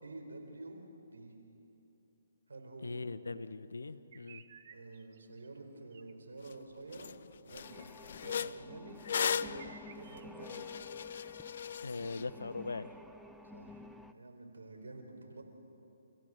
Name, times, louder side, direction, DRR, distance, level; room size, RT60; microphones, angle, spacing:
voice 1, 0.0-1.3 2.5-3.0 4.7-7.1 7.4-10.6 13.5-15.4, right 2 dB, 75° right, 3 dB, 4.7 m, -49 dB
voice 2, 2.8-4.4 11.8-12.9, left 3 dB, 80° left, 13 dB, 1.0 m, -40 dB
sound 1, 4.1-5.5 5.9-6.1 7.7-8.5 9.1-9.2 9.5-10.4, right 8 dB, 45° right, 1.1 m, -57 dB
sound 2, 6.5-6.6 6.9-7.1 7.5-12.2, left 7 dB, 55° left, 0.4 m, -38 dB
sound 3, 7.6-14.1, left 1 dB, ahead, 0.7 m, -53 dB
30.0 x 15.5 x 8.0 m, 2.9 s
figure-of-eight pair, 140°, 0 cm